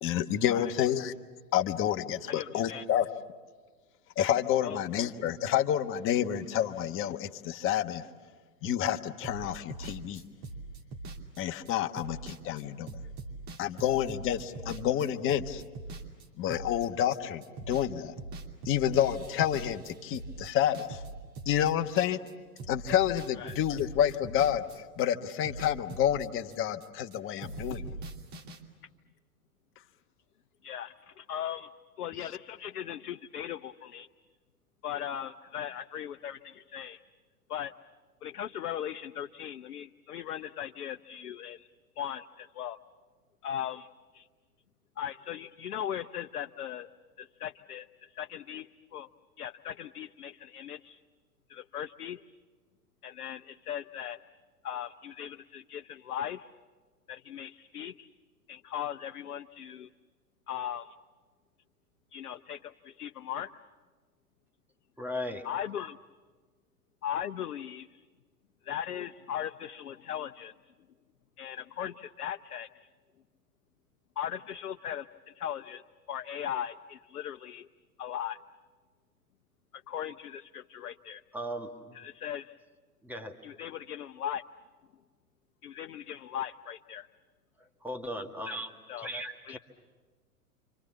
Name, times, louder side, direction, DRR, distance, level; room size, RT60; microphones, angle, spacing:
voice 1, 0.0-1.1 1.5-3.1 4.2-8.0 8.6-10.2 11.4-13.0 13.6-15.6 16.4-18.1 18.6-21.0 21.5-22.2 22.7-27.9, left 10 dB, 25° left, 7 dB, 1.1 m, -29 dB
voice 2, 2.3-2.8 4.6-4.8 23.4-23.5 30.6-31.7 32.0-34.1 34.8-37.0 37.5-37.7 38.2-41.7 42.0-42.8 43.4-43.9 44.1-44.3 45.0-46.9 47.2-49.1 49.4-51.0 51.5-52.2 53.0-54.2 54.6-56.5 57.1-58.1 58.5-59.9 60.5-60.9 62.1-63.5 65.4-66.0 67.0-68.0 68.6-70.5 71.4-72.9 74.2-75.8 76.1-77.7 78.0-78.4 79.9-81.2 81.9-82.6 83.4-84.4 85.6-87.1 88.9-89.1 89.5-89.6, left 10 dB, 70° left, 6 dB, 0.8 m, -38 dB
sound 1, 9.2-17.2 17.4-17.9 18.2-22.3 22.6-27.2 27.4-28.6, right 3 dB, 45° right, 3.0 m, -42 dB
voice 3, 65.0-65.5 81.3-82.0 83.0-83.4 87.8-88.7 89.0-89.6, equal, 5° right, 5 dB, 1.7 m, -37 dB
29.0 x 25.5 x 7.3 m, 1.4 s
figure-of-eight pair, 100°, 46 cm